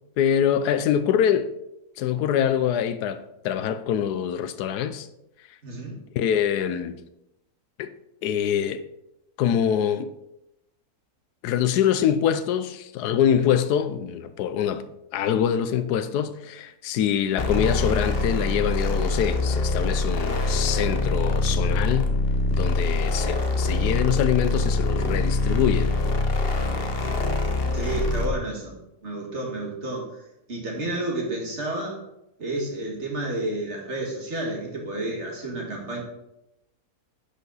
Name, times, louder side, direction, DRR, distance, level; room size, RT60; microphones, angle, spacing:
voice 1, 0.2-1.5 2.0-5.1 6.2-7.0 7.8-7.9 8.2-8.8 9.4-10.1 11.4-22.2 22.5-25.9, left 9 dB, 85° left, 1.2 m, -24 dB
voice 2, 5.6-5.9 26.7-27.3 27.7-30.2 30.5-32.0 32.4-36.0, right 2 dB, 45° right, 2.0 m, -31 dB
sound 1, 17.4-28.4, left 2 dB, 50° left, 0.8 m, -24 dB
10.0 x 5.3 x 4.0 m
omnidirectional pair, 1.7 m